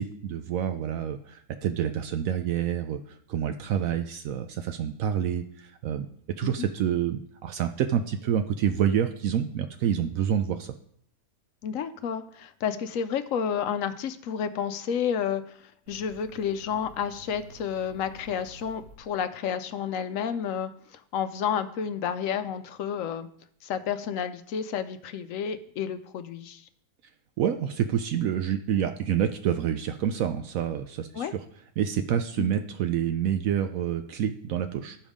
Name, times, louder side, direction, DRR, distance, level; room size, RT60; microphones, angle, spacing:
voice 1, 0.0-6.1 6.4-10.7 27.4-31.4 31.8-35.0, right 9 dB, 75° right, 8 dB, 1.0 m, -28 dB
voice 2, 11.6-23.3 23.6-26.6 31.1-31.3 32.4-32.5, left 8 dB, 75° left, 10 dB, 0.9 m, -31 dB
sound 1, 15.9-19.6, right 1 dB, 90° right, 1.7 m, -51 dB
11.0 x 5.3 x 4.9 m, 0.66 s
omnidirectional pair, 1.5 m